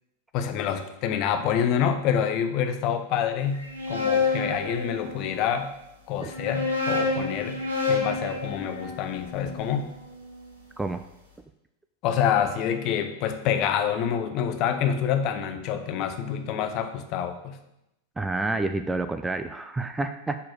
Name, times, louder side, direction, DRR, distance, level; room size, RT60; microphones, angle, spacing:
voice 1, 0.3-5.7 6.1-9.9 12.0-17.6, left 8 dB, 40° left, 8 dB, 0.7 m, -27 dB
sound 1, 3.5-5.4 6.2-10.4, left 4 dB, 75° right, 1.8 m, -29 dB
voice 2, 18.2-20.4, right 2 dB, 10° right, 9 dB, 0.4 m, -29 dB
6.2 x 4.2 x 6.2 m, 0.87 s
figure-of-eight pair, 90°, 0 cm